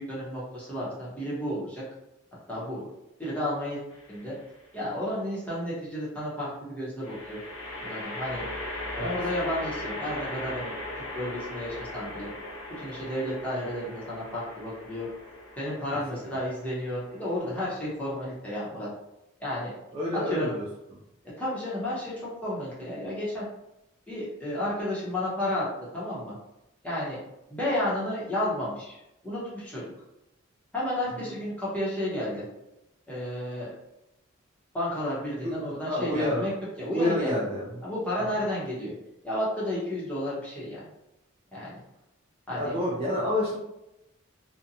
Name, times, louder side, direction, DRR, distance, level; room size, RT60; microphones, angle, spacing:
voice 1, 0.0-1.8 2.5-2.8 3.2-3.8 4.1-4.4 4.7-7.4 7.8-8.4 9.0-12.3 12.8-15.1 15.6-18.9 19.4-19.7 20.1-20.6 21.4-23.5 24.1-25.7 25.9-26.4 26.8-27.2 27.5-29.8 30.7-32.4 33.1-33.7 34.7-36.5 36.8-37.3 37.8-38.9 39.2-40.8 41.5-41.8 42.5-42.8, left 1 dB, 5° left, -8 dB, 0.8 m, -32 dB
sound 1, 3.9-4.5 7.0-18.4, left 1 dB, 90° left, 0.7 m, -39 dB
voice 2, 19.9-20.6 31.2-31.3 35.4-35.5 35.9-36.5 36.9-37.7 38.2-38.3 42.5-43.6, left 1 dB, 30° right, -5 dB, 0.3 m, -28 dB
2.5 x 2.1 x 2.7 m, 0.89 s
head